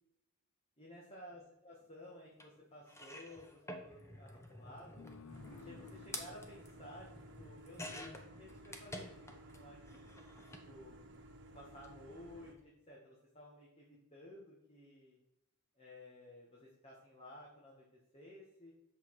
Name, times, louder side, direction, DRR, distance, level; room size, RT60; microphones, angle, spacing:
voice 1, 0.8-5.0 5.6-10.1 10.7-11.0 11.5-15.2 15.8-17.8 18.1-18.7, left 1 dB, 30° left, -4 dB, 1.8 m, -55 dB
sound 1, 2.4-2.5 2.9-9.6 9.9-10.7 11.7-11.9 12.1-12.2, left 1 dB, 15° left, 1.0 m, -50 dB
sound 2, 5.0-8.1, left 5 dB, 85° left, 0.5 m, -57 dB
sound 3, 5.3-12.5, right 1 dB, 55° right, 1.4 m, -56 dB
8.6 x 6.6 x 4.9 m, 0.88 s
head